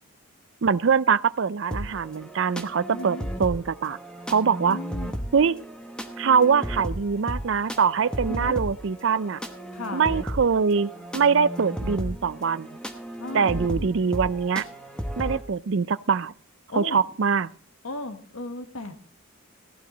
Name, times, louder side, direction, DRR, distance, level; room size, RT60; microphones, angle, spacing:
voice 1, 0.6-4.0 4.3-4.8 5.3-5.6 6.2-9.4 9.9-12.7 13.3-14.7 15.2-16.3 16.7-17.5, right 6 dB, 60° right, 18 dB, 0.5 m, -23 dB
sound 1, 1.7-15.4, equal, 5° left, 1.0 m, -34 dB
voice 2, 2.9-3.3 4.6-5.2 8.3-8.6 9.7-10.1 13.2-13.9 16.7-17.0 17.8-19.0, left 2 dB, 80° left, 8 dB, 1.6 m, -36 dB
15.5 x 11.5 x 3.9 m, 0.43 s
head